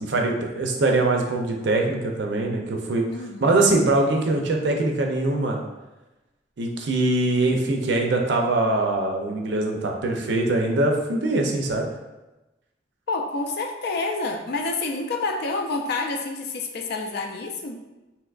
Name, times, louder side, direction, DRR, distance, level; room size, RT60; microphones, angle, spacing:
voice 1, 0.0-3.1 3.4-5.6 6.6-11.9, right 2 dB, 70° right, 1 dB, 0.5 m, -22 dB
voice 2, 3.1-3.5 13.1-17.8, left 3 dB, 60° left, 4 dB, 0.4 m, -28 dB
3.4 x 2.9 x 2.4 m, 1.0 s
head